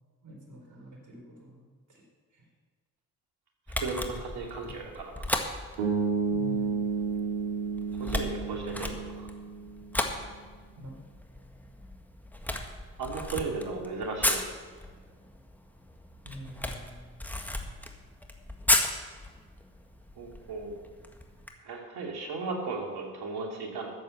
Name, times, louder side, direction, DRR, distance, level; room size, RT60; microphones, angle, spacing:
voice 1, 0.2-2.0 2.3-2.4 6.3-6.9 10.8-10.9 16.2-17.2, equal, 45° right, 0 dB, 4.3 m, -47 dB
Camera, 3.7-21.5, left 1 dB, 5° left, 1.7 m, -35 dB
voice 2, 3.8-5.3 8.0-9.1 13.0-14.4 20.2-20.7 21.6-23.9, right 3 dB, 65° right, 1 dB, 2.7 m, -35 dB
sound 1, 5.8-9.9, right 5 dB, 85° right, 2.3 m, -31 dB
12.5 x 7.5 x 7.1 m, 1.5 s
hypercardioid pair, 50°, 41 cm